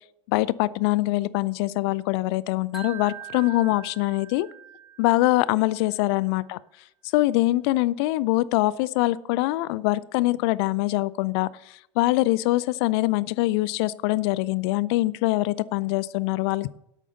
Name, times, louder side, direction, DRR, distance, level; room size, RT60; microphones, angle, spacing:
voice 1, 0.3-4.5 5.0-6.6 7.1-16.7, left 18 dB, 55° left, 20 dB, 0.5 m, -23 dB
Wind chime, 2.7-5.8, right 9 dB, ahead, 1.9 m, -43 dB
12.0 x 8.4 x 4.0 m, 0.81 s
figure-of-eight pair, 80°, 16 cm